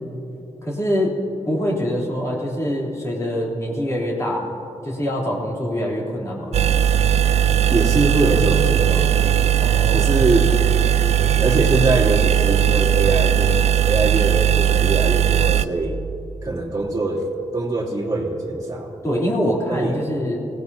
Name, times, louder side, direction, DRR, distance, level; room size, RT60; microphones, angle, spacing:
voice 1, 0.6-1.2 1.5-4.5 4.8-6.6 9.6-10.2 19.0-20.4, equal, 25° left, -4 dB, 3.3 m, -24 dB
sound 1, 6.5-15.7, right 9 dB, 65° right, 0.4 m, -18 dB
voice 2, 7.7-9.2 9.9-10.5 11.4-13.6 13.9-16.0 16.4-17.3 17.5-19.0 19.7-20.0, right 2 dB, 30° right, -4 dB, 2.7 m, -22 dB
24.0 x 18.0 x 2.8 m, 3.0 s
wide cardioid pair, 130°, 12 cm